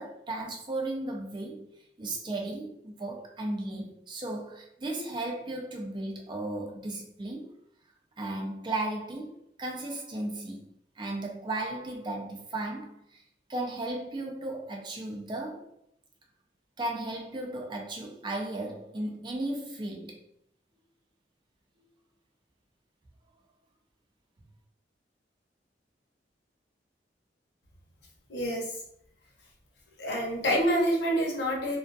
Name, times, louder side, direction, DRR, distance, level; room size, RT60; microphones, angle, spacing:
voice 1, 0.0-1.7 2.0-7.5 8.2-10.7 11.0-13.2 13.5-15.7 16.8-20.2, right 2 dB, 25° right, 0.4 m, -35 dB
voice 2, 28.3-28.7 30.0-31.8, equal, 70° left, 0.8 m, -27 dB
2.3 x 2.3 x 2.5 m
head